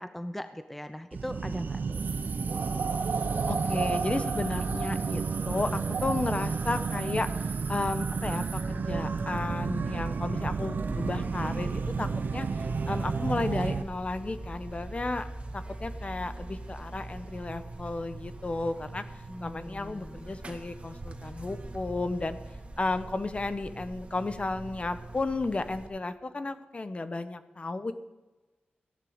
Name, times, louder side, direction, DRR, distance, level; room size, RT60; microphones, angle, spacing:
voice 1, 0.0-2.0 19.3-20.3, left 1 dB, 5° left, 9 dB, 0.6 m, -40 dB
sound 1, 1.1-13.8, right 4 dB, 60° right, 0.8 m, -31 dB
sound 2, 1.9-8.6, right 5 dB, 90° right, 2.6 m, -36 dB
voice 2, 3.5-7.3 7.7-12.5 12.9-15.3 15.5-19.0 19.4-22.4 22.8-27.9, left 2 dB, 35° left, 11 dB, 1.0 m, -33 dB
Buzz, 10.8-25.9, right 2 dB, 35° right, 1.8 m, -43 dB
15.5 x 11.0 x 5.1 m, 1.1 s
wide cardioid pair, 85°, 4 cm